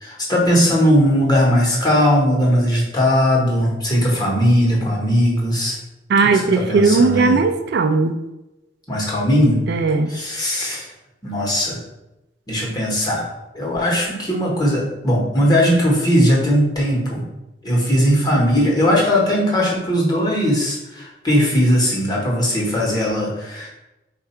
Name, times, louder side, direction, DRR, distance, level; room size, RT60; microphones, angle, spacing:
voice 1, 0.0-5.8 6.2-7.4 8.9-9.6 10.1-10.8 11.2-11.8 12.5-13.2 13.5-17.2 17.6-23.7, equal, 20° left, -3 dB, 1.1 m, -18 dB
voice 2, 6.1-8.2 9.7-10.2, right 4 dB, 60° right, 7 dB, 0.4 m, -17 dB
4.5 x 2.4 x 4.3 m, 0.96 s
head